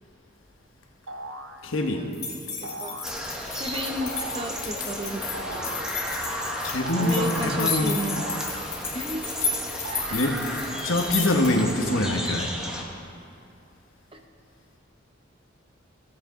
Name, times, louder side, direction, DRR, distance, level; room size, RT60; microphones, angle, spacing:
sound 1, 1.1-1.6 2.6-3.2 4.0-4.6 5.3-6.0 6.8-7.5 8.2-9.1 9.8-10.7, right 2 dB, 70° right, 0.8 m, -38 dB
voice 1, 1.6-2.1 5.4-5.5 6.3-8.0 10.1-10.4 10.8-12.6, left 1 dB, 80° left, 3 dB, 1.1 m, -25 dB
sound 2, 2.1-11.7, left 5 dB, 55° left, 2.2 m, -33 dB
voice 2, 2.6-3.0 3.5-6.0 7.0-8.2 8.9-9.3 9.9-10.2 14.1-14.2, right 1 dB, 25° right, 5 dB, 0.7 m, -33 dB
sound 3, 3.0-12.8, equal, 5° right, 1.0 m, -34 dB
16.0 x 8.8 x 3.8 m, 2.5 s
head